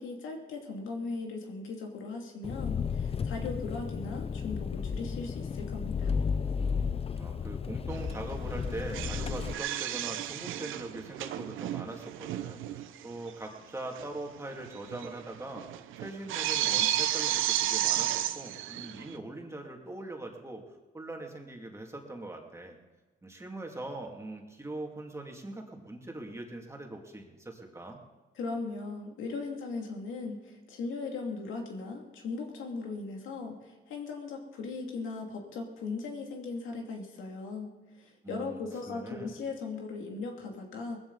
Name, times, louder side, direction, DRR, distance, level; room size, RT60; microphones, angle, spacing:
voice 1, 0.0-6.1 28.4-41.0, left 4 dB, 80° left, 1 dB, 2.6 m, -38 dB
Engine, 2.4-9.5, left 6 dB, 30° left, 0.5 m, -33 dB
voice 2, 7.2-15.6 16.0-20.6 20.9-22.8 23.2-28.0 38.2-38.6 38.9-39.4, right 2 dB, 15° right, 1 dB, 2.4 m, -42 dB
sound 1, 7.9-8.2 8.4-13.0 13.3-13.4 14.0-14.1 14.4-19.2, right 12 dB, 85° right, 0.7 m, -32 dB
19.5 x 15.0 x 4.1 m, 1.2 s
cardioid pair, 90°, 20 cm